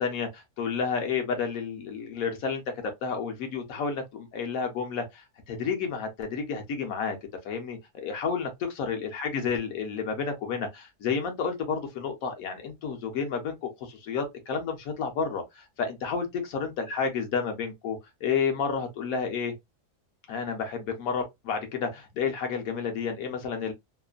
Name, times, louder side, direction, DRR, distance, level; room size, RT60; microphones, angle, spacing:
voice 1, 0.0-2.6 3.0-7.2 7.4-19.5 20.3-23.7, left 5 dB, 65° left, 1.1 m, -31 dB
3.0 x 2.1 x 2.3 m
omnidirectional pair, 1.7 m